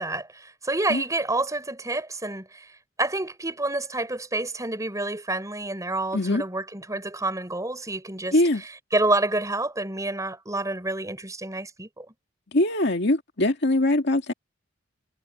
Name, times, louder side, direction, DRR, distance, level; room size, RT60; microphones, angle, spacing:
voice 1, 0.0-2.7 3.0-8.4 8.6-12.1, right 2 dB, 15° right, 4.8 m, -28 dB
voice 2, 8.3-8.6 12.5-14.3, left 1 dB, 60° left, 2.2 m, -22 dB
head